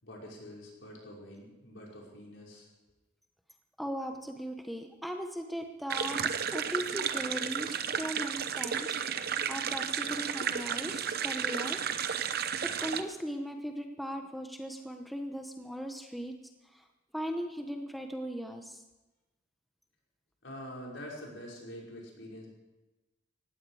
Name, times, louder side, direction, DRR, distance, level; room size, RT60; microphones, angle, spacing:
voice 1, 0.0-2.7 20.4-22.5, equal, 70° left, -2 dB, 5.5 m, -45 dB
voice 2, 3.8-11.8 12.8-16.3 16.7-16.8 17.1-18.8, equal, ahead, 4 dB, 1.1 m, -38 dB
sound 1, 5.9-13.0, right 7 dB, 50° right, 0.9 m, -33 dB
19.0 x 15.5 x 4.9 m, 1.1 s
head